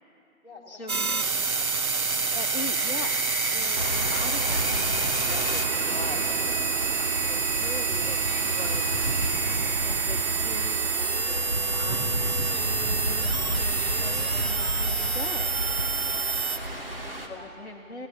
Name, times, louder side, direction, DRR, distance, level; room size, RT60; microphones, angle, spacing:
voice 1, 0.4-1.3 1.9-2.1 6.7-6.9 11.2-11.5 12.5-12.9 15.8-18.1, left 3 dB, 30° left, 0 dB, 4.5 m, -51 dB
sound 1, 0.9-16.6, right 5 dB, 85° right, 1.3 m, -28 dB
sound 2, 1.6-15.9, left 2 dB, 10° left, 3.6 m, -40 dB
voice 2, 2.3-5.6 5.9-6.3 7.2-9.1 9.8-12.2 12.5-15.5 17.3-18.1, left 3 dB, 50° left, 2 dB, 1.3 m, -41 dB
sound 3, 3.8-17.3, right 1 dB, 40° right, 2.5 m, -32 dB
24.5 x 17.5 x 8.7 m, 2.6 s
figure-of-eight pair, 175°, 42 cm